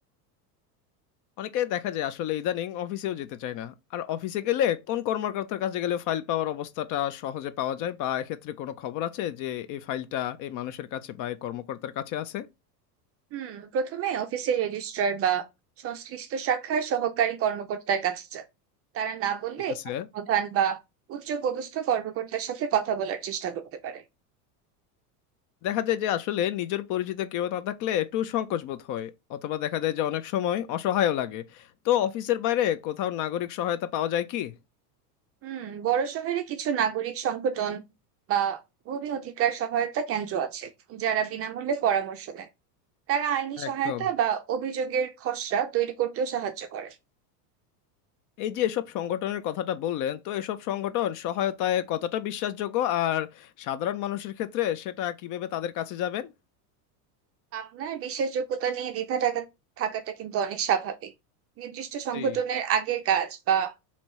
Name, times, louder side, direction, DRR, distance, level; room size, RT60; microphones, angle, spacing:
voice 1, 1.4-12.5 19.7-20.1 25.6-34.5 43.6-44.0 48.4-56.3 62.1-62.3, left 11 dB, 45° left, 0.4 m, -29 dB
voice 2, 13.3-15.4 15.8-18.4 18.9-19.8 20.1-20.8 21.1-24.0 35.4-37.8 38.3-42.5 43.1-46.9 57.5-59.5 59.8-61.1 61.6-63.7, right 8 dB, 30° right, 0.4 m, -28 dB
2.9 x 2.8 x 4.5 m
supercardioid pair, 110°, 48 cm